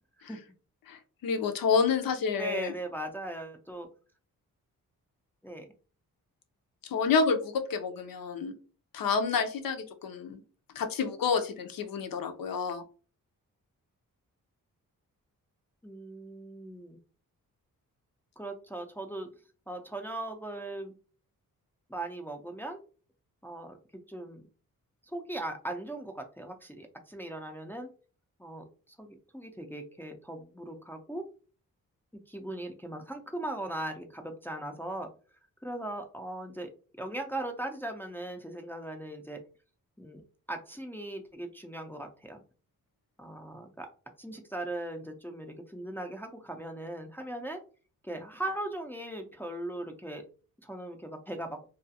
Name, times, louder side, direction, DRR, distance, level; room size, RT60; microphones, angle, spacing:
voice 1, 0.9-2.7 6.8-8.5 8.9-10.4 10.7-12.8, left 5 dB, 75° left, 8 dB, 0.6 m, -29 dB
voice 2, 2.4-3.9 5.4-5.7 15.8-17.0 18.4-19.3 19.7-20.9 21.9-22.8 23.4-24.4 25.1-27.9 28.4-28.7 29.0-31.2 32.3-35.1 35.6-36.7 37.0-39.4 40.0-40.2 40.5-42.4 43.2-43.9 44.2-47.6 48.0-50.2 50.6-51.6, right 1 dB, 5° left, 3 dB, 0.4 m, -39 dB
2.4 x 2.3 x 2.7 m, 0.37 s
cardioid pair, 55°, 35 cm